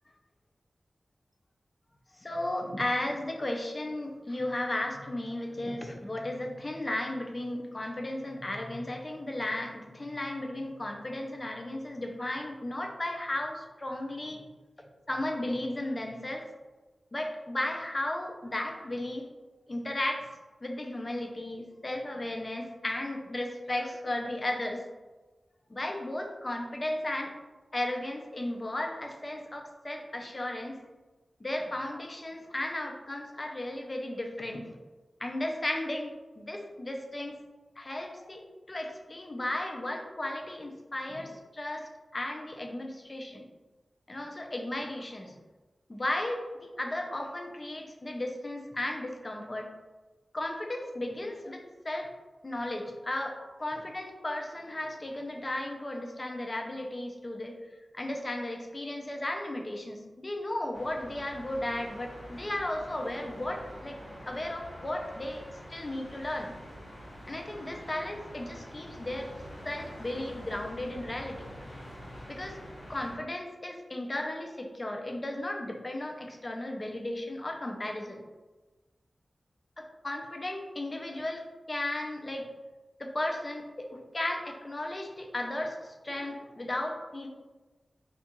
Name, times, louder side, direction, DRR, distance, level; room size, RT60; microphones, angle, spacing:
voice 1, 2.2-14.4 15.1-16.5 17.1-19.3 19.7-20.3 20.6-24.9 25.7-27.4 27.7-30.8 31.4-34.8 35.2-37.4 37.8-43.5 44.1-45.4 45.9-49.7 50.3-52.1 52.4-57.5 57.9-64.0 64.3-65.4 65.7-66.5 67.3-69.3 69.6-71.5 72.3-72.6 72.9-78.2 79.8-82.5 83.0-87.3, left 1 dB, 40° left, 3 dB, 0.4 m, -35 dB
sound 1, 60.7-73.1, equal, 65° left, 1.0 m, -46 dB
2.4 x 2.2 x 2.9 m, 1.2 s
cardioid pair, 45°, 0 cm